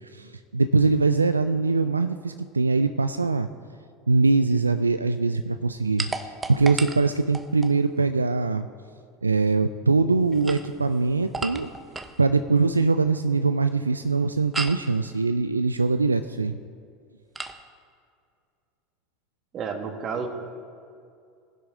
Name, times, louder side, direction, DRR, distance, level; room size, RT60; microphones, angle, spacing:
voice 1, 0.1-3.5 4.1-8.7 9.2-11.7 12.2-16.6, right 3 dB, 90° right, 10 dB, 0.3 m, -22 dB
sound 1, 6.0-7.8 10.2-12.2 14.5-14.9 17.3-17.6, right 3 dB, 15° right, 0.9 m, -34 dB
voice 2, 19.5-20.3, right 5 dB, 40° right, 5 dB, 1.8 m, -30 dB
19.0 x 10.5 x 3.7 m, 2.3 s
figure-of-eight pair, 75°, 0 cm